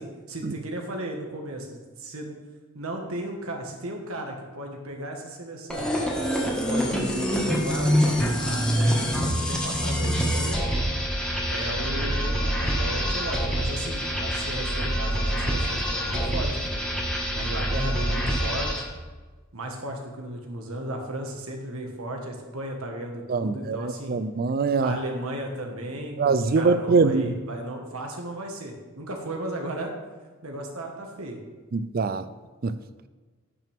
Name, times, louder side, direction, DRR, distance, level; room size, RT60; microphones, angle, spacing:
voice 1, 0.0-2.3 2.7-5.9 6.6-10.6 11.5-16.8 17.3-18.8 19.5-24.2 24.8-29.9 30.4-31.4, right 1 dB, 85° right, 2 dB, 1.5 m, -35 dB
sound 1, 5.7-18.9, equal, 5° left, 1.6 m, -26 dB
voice 2, 23.3-25.0 26.2-27.3 31.7-32.3 32.6-32.8, right 4 dB, 45° right, 13 dB, 0.4 m, -23 dB
16.5 x 6.0 x 3.5 m, 1.4 s
head